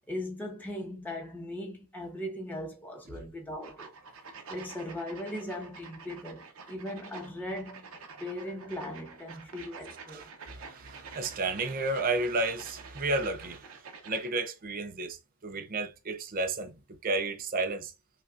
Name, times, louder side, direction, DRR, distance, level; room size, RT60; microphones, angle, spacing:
voice 1, 0.1-3.9 4.5-7.9 8.2-10.2, left 1 dB, 10° left, 0.9 m, -38 dB
sound 1, 3.6-14.4, right 5 dB, 65° right, 0.9 m, -48 dB
voice 2, 10.1-13.8 14.1-16.7 17.0-17.9, right 2 dB, 40° right, 0.6 m, -32 dB
5.7 x 2.4 x 2.5 m
head